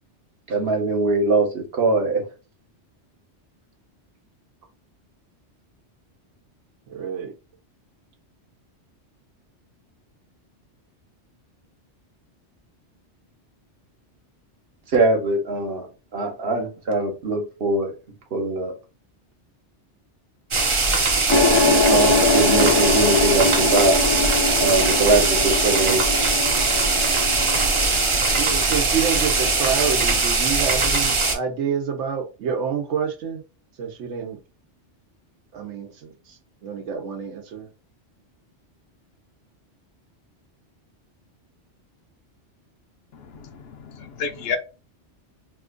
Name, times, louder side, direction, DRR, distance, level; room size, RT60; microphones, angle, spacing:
voice 1, 0.5-2.2 14.9-15.9 16.1-17.9 18.3-18.7 21.9-24.0 24.6-26.0, right 2 dB, 60° right, 1.1 m, -22 dB
voice 2, 6.9-7.3 28.4-33.4 33.8-34.4 35.5-37.7, right 7 dB, 85° right, 1.0 m, -28 dB
sound 1, 20.5-31.4, right 3 dB, 40° right, 0.5 m, -21 dB
sound 2, 21.3-30.0, left 3 dB, 35° left, 0.4 m, -23 dB
voice 3, 43.1-44.6, left 5 dB, 65° left, 0.8 m, -31 dB
2.8 x 2.4 x 3.6 m
omnidirectional pair, 1.2 m